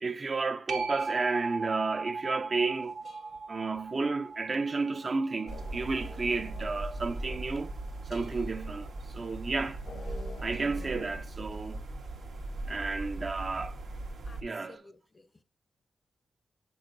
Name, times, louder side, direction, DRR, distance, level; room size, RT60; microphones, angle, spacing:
voice 1, 0.0-3.0 3.5-7.7 8.1-9.8 10.4-11.8 12.7-13.8 14.4-14.8, right 3 dB, 45° right, 0.4 m, -32 dB
sound 1, 0.7-7.8 13.4-13.5, right 4 dB, 70° right, 0.8 m, -39 dB
sound 2, 2.7-11.2, left 3 dB, 75° left, 0.8 m, -51 dB
sound 3, 5.5-14.4, right 2 dB, 90° right, 1.2 m, -39 dB
voice 2, 14.2-15.4, left 3 dB, 30° left, 0.5 m, -55 dB
8.2 x 6.1 x 2.6 m
cardioid pair, 75°, 0 cm